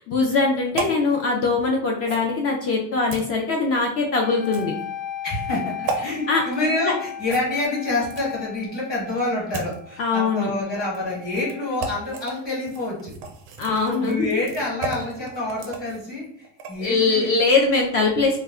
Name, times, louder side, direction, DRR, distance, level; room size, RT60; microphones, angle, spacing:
voice 1, 0.0-4.7 6.3-6.4 10.0-10.5 13.6-14.3 16.8-18.4, left 4 dB, 40° left, 0 dB, 0.4 m, -21 dB
sound 1, 0.8-1.0 2.0-2.3 3.1-3.3 4.4-4.8 5.9-6.0 7.2-8.4 9.1-9.8 10.8-11.0 11.3-11.5 11.8-12.3 12.6-16.9 17.3-17.5, right 4 dB, 35° right, 0.4 m, -33 dB
sound 2, 4.2-12.3, left 8 dB, 80° left, 0.9 m, -37 dB
voice 2, 5.2-13.1 13.6-17.3, left 2 dB, 25° left, -5 dB, 1.1 m, -27 dB
2.2 x 2.1 x 3.5 m, 0.63 s
cardioid pair, 155°, 37 cm